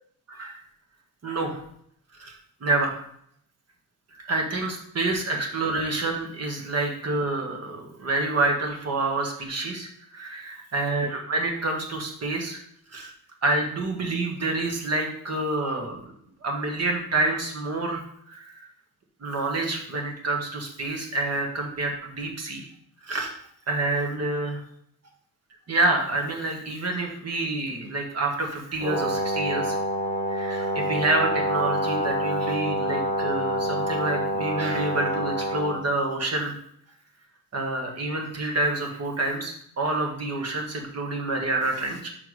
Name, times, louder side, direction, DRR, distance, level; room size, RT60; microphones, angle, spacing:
voice 1, 1.2-1.6 2.1-2.3 2.6-3.0 4.2-12.6 12.9-13.1 13.4-16.1 16.4-18.6 19.2-22.7 23.0-23.3 23.7-24.6 25.7-29.8 30.3-36.5 37.5-42.1, right 2 dB, 45° right, 2 dB, 1.5 m, -28 dB
Brass instrument, 28.8-35.8, equal, 70° right, 2.1 m, -27 dB
5.9 x 4.5 x 4.8 m, 0.67 s
wide cardioid pair, 120°, 34 cm